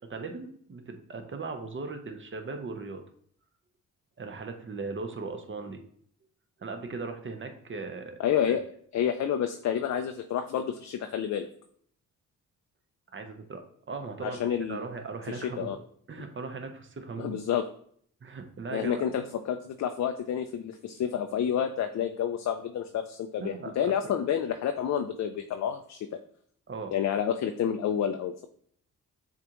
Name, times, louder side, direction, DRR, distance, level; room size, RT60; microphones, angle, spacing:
voice 1, 0.0-3.0 4.2-5.8 6.6-8.2 8.5-8.6 13.1-15.8 16.1-17.4 18.2-19.0 23.4-24.1 26.7-26.9, right 4 dB, 30° right, 6 dB, 0.9 m, -38 dB
voice 2, 8.2-8.6 8.9-11.5 14.2-14.8 15.3-15.8 17.2-17.6 18.7-26.0 26.9-28.5, left 9 dB, 45° left, 7 dB, 0.5 m, -29 dB
7.0 x 2.5 x 3.0 m, 0.62 s
hypercardioid pair, 50°, 38 cm